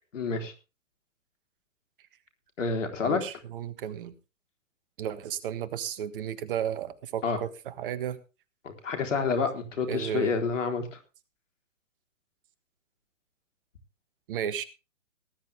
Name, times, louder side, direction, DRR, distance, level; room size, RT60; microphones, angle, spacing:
voice 1, 0.1-0.5 2.6-3.2 7.2-7.4 8.6-11.0, left 4 dB, 65° left, 6 dB, 4.0 m, -28 dB
voice 2, 3.0-4.1 5.0-8.2 9.9-10.4 14.3-14.6, right 9 dB, 45° right, 13 dB, 1.5 m, -33 dB
19.0 x 10.0 x 3.5 m, 0.30 s
hypercardioid pair, 130°, 39 cm